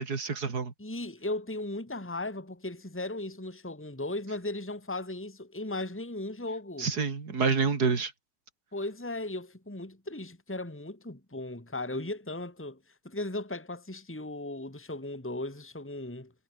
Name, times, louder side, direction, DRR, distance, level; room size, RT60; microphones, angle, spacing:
voice 1, 0.0-0.7 6.8-8.1, right 5 dB, 85° right, 3.1 m, -28 dB
voice 2, 0.8-6.9 8.7-12.8 13.0-16.3, left 2 dB, 10° left, 2.4 m, -37 dB
omnidirectional pair, 1.6 m